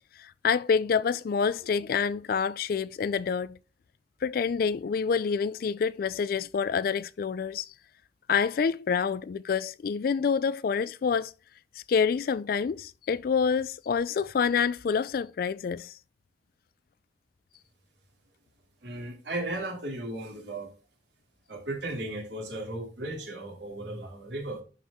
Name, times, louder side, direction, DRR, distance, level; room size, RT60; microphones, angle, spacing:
voice 1, 0.2-3.6 4.2-7.7 8.3-11.3 11.9-15.9, left 6 dB, 55° left, 0.3 m, -27 dB
voice 2, 18.8-20.7 21.5-24.6, right 1 dB, 80° right, 3.0 m, -35 dB
11.0 x 4.5 x 3.6 m
head